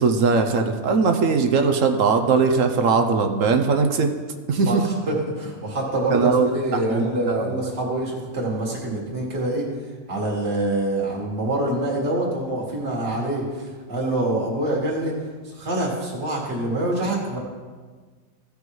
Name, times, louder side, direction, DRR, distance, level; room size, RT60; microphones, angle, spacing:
voice 1, 0.0-4.1 4.5-4.9 6.1-7.6, right 4 dB, 70° right, 6 dB, 1.1 m, -20 dB
voice 2, 5.1-9.7 10.1-15.1 15.4-17.4, right 1 dB, 50° right, -3 dB, 2.2 m, -25 dB
15.0 x 5.2 x 4.7 m, 1.5 s
omnidirectional pair, 1.5 m